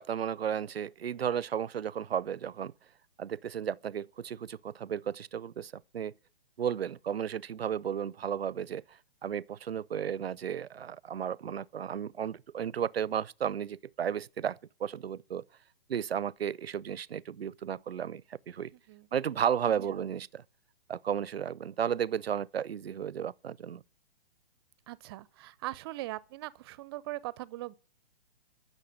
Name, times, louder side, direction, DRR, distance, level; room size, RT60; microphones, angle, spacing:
voice 1, 0.0-2.7 3.2-6.1 6.6-8.8 9.2-15.4 15.9-18.7 19.1-20.4 20.9-23.8, right 8 dB, 80° right, 0.6 m, -33 dB
voice 2, 18.7-19.1 19.9-20.0 24.9-27.7, right 17 dB, 25° right, 0.5 m, -40 dB
13.0 x 6.5 x 9.5 m
figure-of-eight pair, 130°, 30 cm